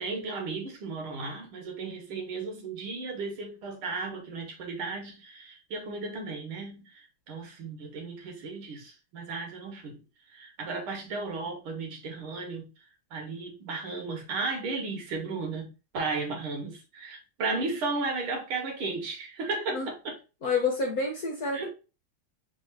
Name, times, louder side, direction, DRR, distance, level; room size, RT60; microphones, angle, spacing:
voice 1, 0.0-12.7 13.1-20.2 21.5-21.7, right 3 dB, 75° right, 2.2 m, -35 dB
voice 2, 20.4-21.7, left 4 dB, 50° left, 1.3 m, -28 dB
4.1 x 3.2 x 3.9 m
omnidirectional pair, 2.3 m